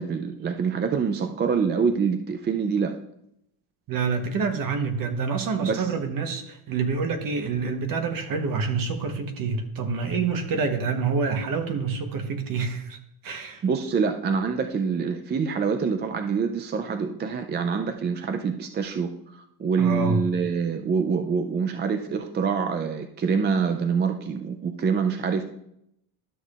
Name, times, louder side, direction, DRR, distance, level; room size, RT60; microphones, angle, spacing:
voice 1, 0.0-2.9 5.6-5.9 13.6-25.4, right 6 dB, 25° right, 6 dB, 0.4 m, -25 dB
voice 2, 3.9-13.6 19.8-20.2, right 4 dB, 55° right, 7 dB, 1.1 m, -27 dB
12.5 x 6.5 x 2.4 m, 0.77 s
cardioid pair, 125°, 41 cm